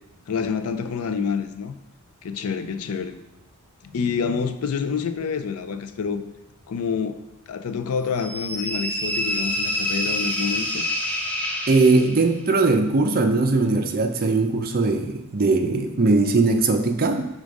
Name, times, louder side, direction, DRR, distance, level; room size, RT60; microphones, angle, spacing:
voice 1, 0.3-1.7 2.2-3.2 3.9-6.2 6.7-7.2 7.5-10.8, left 6 dB, 70° left, 9 dB, 0.4 m, -27 dB
sound 1, 8.2-12.3, left 1 dB, 5° left, 0.6 m, -27 dB
voice 2, 11.7-17.3, right 3 dB, 40° right, 5 dB, 0.5 m, -20 dB
4.9 x 3.7 x 5.1 m, 0.99 s
head